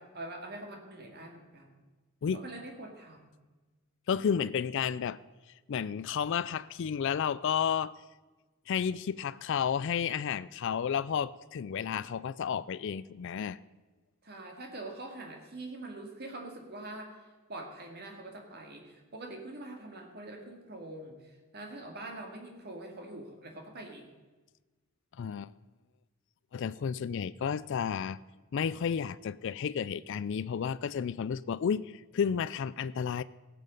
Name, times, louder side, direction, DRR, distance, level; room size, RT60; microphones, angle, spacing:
voice 1, 0.0-1.7 2.3-3.3 14.2-24.1, right 2 dB, 50° right, 2.2 m, -44 dB
voice 2, 4.1-5.2 5.7-7.9 8.7-13.6 25.2-25.5 26.5-28.2 28.5-33.2, left 7 dB, 60° left, 0.4 m, -32 dB
17.0 x 7.7 x 5.3 m
head